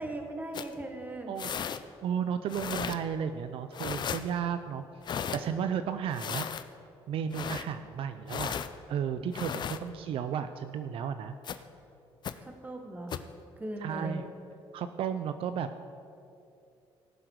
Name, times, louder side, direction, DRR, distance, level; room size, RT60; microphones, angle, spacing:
voice 1, 0.0-1.3 12.4-13.1 13.6-14.2, right 1 dB, 15° right, 3 dB, 1.6 m, -38 dB
sound 1, 0.5-0.7 1.4-1.8 2.5-3.0 3.7-4.2 5.0-5.4 6.1-6.6 7.3-7.6 8.3-8.7 9.3-9.8 11.4-11.6 12.2-12.3 13.1-13.3, left 8 dB, 50° left, 0.6 m, -35 dB
voice 2, 2.0-6.5 7.1-8.5 8.9-11.6 13.8-14.3 14.7-15.7, right 8 dB, 70° right, 9 dB, 0.5 m, -33 dB
17.5 x 7.5 x 4.7 m, 2.7 s
cardioid pair, 95°, 10 cm